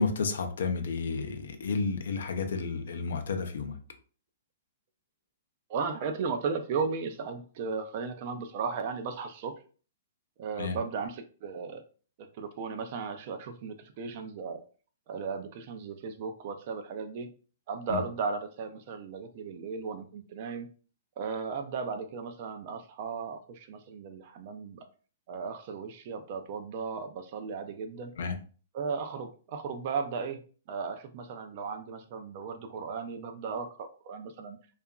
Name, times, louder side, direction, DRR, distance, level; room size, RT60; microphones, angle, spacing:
voice 1, 0.0-3.8 10.6-10.8 17.9-18.0 28.2-28.4, left 4 dB, 70° left, 0.5 m, -31 dB
voice 2, 5.7-9.5 10.4-11.8 12.2-14.6 15.1-17.3 17.7-20.7 21.2-24.8 25.3-28.1 28.7-30.4 30.7-34.6, right 5 dB, 35° right, 0.3 m, -36 dB
2.8 x 2.3 x 2.2 m
hypercardioid pair, 175°, 0 cm